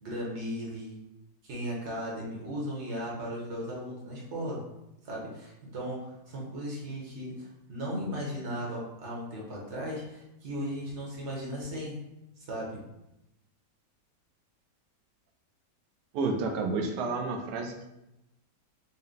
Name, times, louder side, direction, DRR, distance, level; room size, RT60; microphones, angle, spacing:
voice 1, 0.0-0.9 1.4-4.6 5.0-11.9 12.4-12.8, equal, 45° right, -3 dB, 1.2 m, -36 dB
voice 2, 16.1-17.8, right 3 dB, 85° right, 3 dB, 1.2 m, -30 dB
4.1 x 2.1 x 3.8 m, 0.90 s
omnidirectional pair, 1.8 m